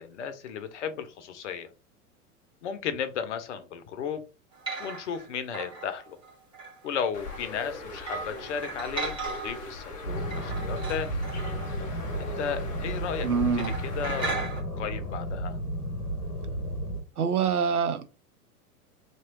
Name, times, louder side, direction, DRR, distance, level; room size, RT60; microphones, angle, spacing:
voice 1, 0.0-1.7 2.6-4.2 4.8-6.2 6.8-11.2 12.2-13.3 13.8-15.6, left 7 dB, 50° left, 0.7 m, -34 dB
sound 1, 4.5-5.3 5.5-6.9 7.3-7.4 8.0-9.7 10.1-12.4 12.7-12.8 13.1-13.3 13.6-14.6, right 3 dB, 10° right, 1.4 m, -37 dB
Bird, 7.1-14.2, left 3 dB, 20° left, 0.5 m, -40 dB
sound 2, 10.0-17.0, equal, 85° left, 0.9 m, -33 dB
voice 2, 13.2-13.7 17.2-18.1, right 6 dB, 80° right, 0.6 m, -25 dB
3.0 x 3.0 x 2.9 m
figure-of-eight pair, 95°, 44 cm